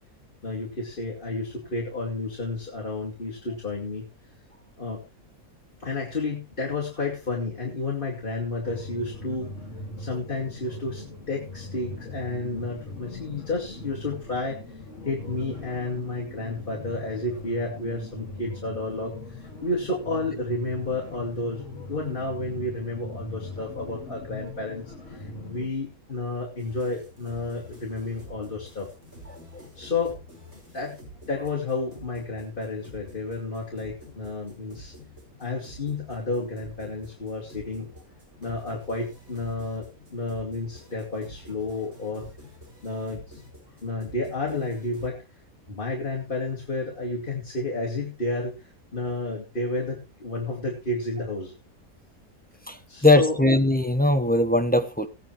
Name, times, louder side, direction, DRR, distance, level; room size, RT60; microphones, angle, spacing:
voice 1, 0.4-4.0 4.8-5.0 5.8-9.6 10.0-14.6 15.0-28.9 29.7-30.2 30.7-31.0 31.3-35.0 35.4-37.9 38.4-42.3 42.8-43.4 43.8-45.2 45.7-51.5 52.9-53.4, left 2 dB, 35° left, -3 dB, 2.7 m, -31 dB
sound 1, 8.6-25.7, left 2 dB, 55° left, 2.7 m, -40 dB
sound 2, 26.6-45.1, equal, 45° right, 5.5 m, -48 dB
voice 2, 29.3-29.6 52.7-55.1, left 2 dB, 5° left, 7 dB, 1.0 m, -21 dB
18.5 x 9.2 x 3.2 m, 0.27 s
omnidirectional pair, 1.5 m